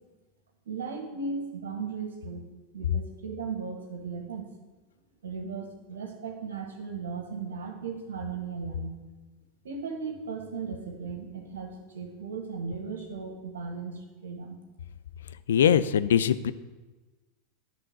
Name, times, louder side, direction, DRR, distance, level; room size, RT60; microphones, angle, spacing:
voice 1, 0.6-2.4 2.7-4.5 5.2-9.0 9.6-14.6 15.7-15.8, right 5 dB, 90° right, 3 dB, 1.5 m, -36 dB
voice 2, 15.5-16.5, left 8 dB, 85° left, 15 dB, 0.4 m, -22 dB
10.5 x 3.8 x 6.5 m, 1.2 s
hypercardioid pair, 100°, 0 cm